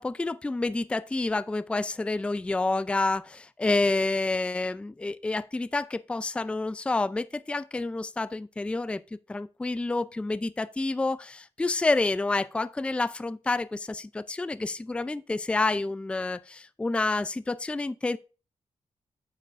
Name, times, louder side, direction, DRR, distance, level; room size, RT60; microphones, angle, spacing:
voice 1, 0.0-9.0 9.3-18.2, left 3 dB, 10° left, 0.3 m, -28 dB
9.8 x 7.6 x 2.4 m
wide cardioid pair, 120°, 11 cm